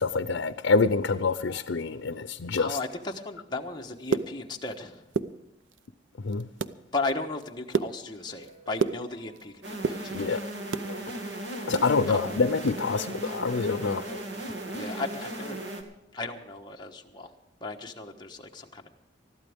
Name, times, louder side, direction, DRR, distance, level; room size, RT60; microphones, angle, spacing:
voice 1, 0.0-2.8 6.2-6.5 10.1-10.4 10.9-11.0 11.7-14.2, left 4 dB, 85° left, 0.6 m, -26 dB
voice 2, 2.6-5.0 6.9-10.2 11.0-11.7 12.1-12.2 14.8-15.6 16.1-17.3 17.6-18.9, left 3 dB, 25° left, 1.2 m, -36 dB
sound 1, 3.8-4.8 5.0-5.9 6.3-6.8 7.2-9.4 9.7-10.9 11.3-12.8 13.1-13.2 13.6-13.8 14.2-14.4, right 4 dB, 85° right, 0.6 m, -31 dB
Guitar, 7.9-10.7, right 2 dB, 40° right, 4.2 m, -56 dB
sound 2, 9.6-15.8, right 1 dB, 70° right, 2.2 m, -36 dB
20.5 x 14.0 x 3.6 m
head